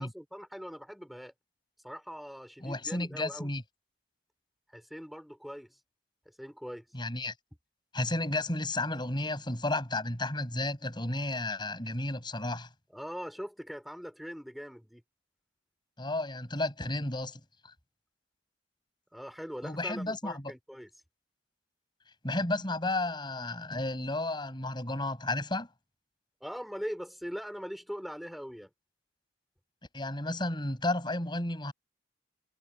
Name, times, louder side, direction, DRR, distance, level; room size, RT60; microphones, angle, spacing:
voice 1, 0.0-1.3 1.8-3.5 4.7-5.7 6.4-6.9 12.9-15.0 19.1-20.9 26.4-28.7, equal, ahead, 3.8 m, -41 dB
voice 2, 2.6-3.6 6.9-7.3 7.9-12.7 16.0-17.4 19.6-20.5 22.2-25.7 29.9-31.7, left 2 dB, 25° left, 5.9 m, -32 dB
head